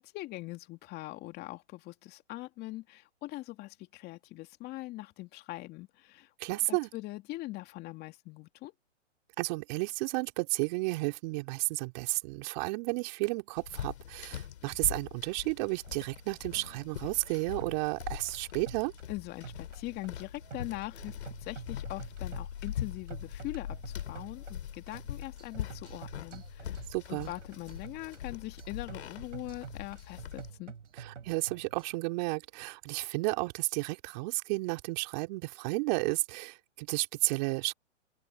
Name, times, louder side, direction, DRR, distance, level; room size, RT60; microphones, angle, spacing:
voice 1, 0.0-6.3 6.7-8.7 19.1-30.7, left 18 dB, 25° left, 2.6 m, -42 dB
voice 2, 6.4-6.9 9.4-18.9 26.9-27.3 31.0-37.7, right 27 dB, 35° right, 3.2 m, -32 dB
sound 1, 13.6-30.5, left 10 dB, 60° left, 3.6 m, -42 dB
sound 2, 15.7-32.0, right 6 dB, 80° right, 7.8 m, -49 dB
open air
hypercardioid pair, 130°, 36 cm